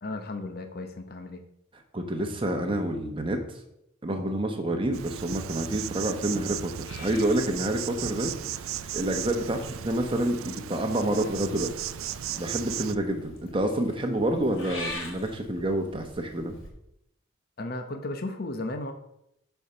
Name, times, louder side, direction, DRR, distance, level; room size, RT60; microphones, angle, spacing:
voice 1, 0.0-1.4 17.6-18.9, left 2 dB, 45° left, 6 dB, 0.9 m, -34 dB
voice 2, 1.9-3.4 4.0-8.3 8.9-11.7 12.4-16.5, right 1 dB, 25° right, 4 dB, 1.0 m, -28 dB
Insect, 4.9-13.0, right 11 dB, 85° right, 0.4 m, -36 dB
Purr / Meow, 6.9-10.1 11.0-16.7, left 2 dB, 70° left, 2.7 m, -44 dB
9.0 x 4.6 x 5.6 m, 0.79 s
head